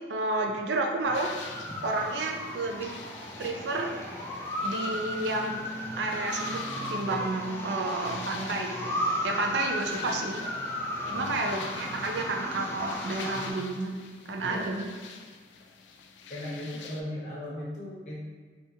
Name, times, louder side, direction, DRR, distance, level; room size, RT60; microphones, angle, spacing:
voice 1, 0.1-1.4 1.8-2.9 3.4-3.9 4.6-5.6 6.0-10.4 11.1-14.0 14.3-14.9, right 2 dB, 80° right, 2 dB, 0.5 m, -31 dB
sound 1, 1.0-13.5, equal, 15° left, 0.4 m, -35 dB
sound 2, 1.1-17.0, left 5 dB, 90° left, 0.4 m, -47 dB
voice 2, 11.0-11.5 11.9-12.2 14.4-14.7 16.3-18.2, left 1 dB, 45° left, -6 dB, 1.0 m, -38 dB
3.3 x 2.9 x 2.8 m, 1.5 s
head